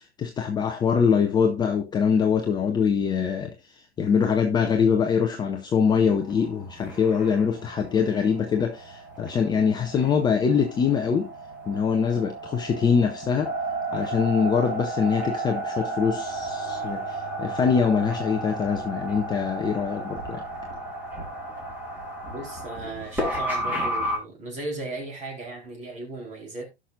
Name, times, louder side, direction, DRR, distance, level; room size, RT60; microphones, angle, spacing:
voice 1, 0.0-11.3 11.7-13.5 13.9-20.4, left 6 dB, 15° left, 0.8 m, -24 dB
sound 1, 6.2-24.2, right 2 dB, 5° right, 3.0 m, -33 dB
voice 2, 22.3-26.7, right 2 dB, 20° right, 4.2 m, -36 dB
17.0 x 6.2 x 2.5 m
figure-of-eight pair, 105°, 32 cm